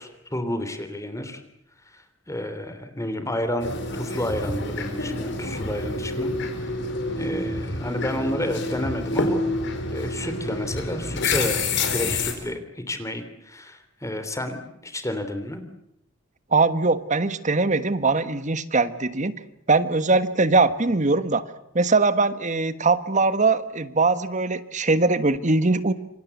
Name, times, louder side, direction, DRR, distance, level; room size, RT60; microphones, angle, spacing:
voice 1, 0.0-1.4 1.9-6.3 7.2-9.4 9.9-15.6, left 1 dB, 15° left, 9 dB, 3.2 m, -30 dB
sound 1, 3.6-12.3, left 2 dB, 60° left, 4.5 m, -28 dB
voice 2, 16.5-19.3 19.7-21.4 21.7-25.9, right 3 dB, 40° right, 13 dB, 1.4 m, -21 dB
28.0 x 24.0 x 8.3 m, 0.79 s
head